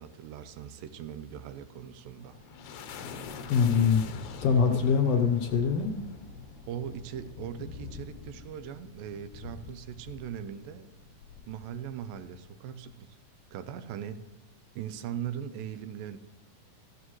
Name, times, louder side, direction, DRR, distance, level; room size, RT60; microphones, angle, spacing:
voice 1, 0.0-2.4 4.7-4.9 6.7-10.9 11.5-13.2 13.5-14.3 14.8-16.2, right 9 dB, 85° right, 10 dB, 2.4 m, -40 dB
sound 1, 1.8-12.5, left 5 dB, 90° left, 2.7 m, -44 dB
voice 2, 3.5-4.1 4.4-5.9, left 6 dB, 70° left, 4 dB, 1.5 m, -23 dB
14.0 x 14.0 x 3.1 m, 1.0 s
omnidirectional pair, 4.0 m